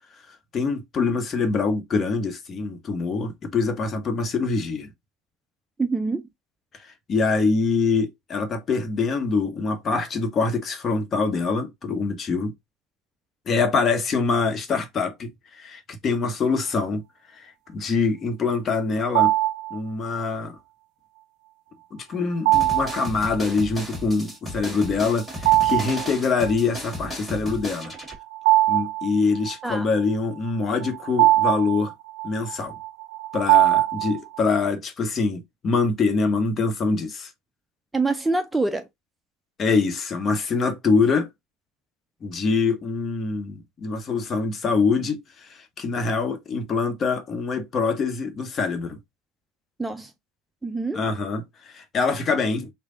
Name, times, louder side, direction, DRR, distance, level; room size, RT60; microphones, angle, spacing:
voice 1, 0.5-4.9 7.1-12.5 13.5-17.0 17.4-19.3 19.7-20.5 21.9-27.9 28.7-31.9 32.2-32.7 33.3-37.3 39.6-41.3 42.2-45.2 45.5-49.0 50.9-52.7, left 4 dB, 35° left, 1.0 m, -24 dB
voice 2, 5.8-6.3 29.6-29.9 37.9-38.9 49.8-50.1 50.6-51.0, right 3 dB, 10° right, 0.4 m, -25 dB
sound 1, 19.1-19.8 22.5-23.1 25.4-26.1 26.5-26.6 28.0-29.5 30.5-34.4, right 17 dB, 70° right, 0.5 m, -21 dB
sound 2, 22.5-28.2, equal, 10° left, 1.9 m, -35 dB
3.3 x 2.2 x 3.7 m
hypercardioid pair, 85°, 0 cm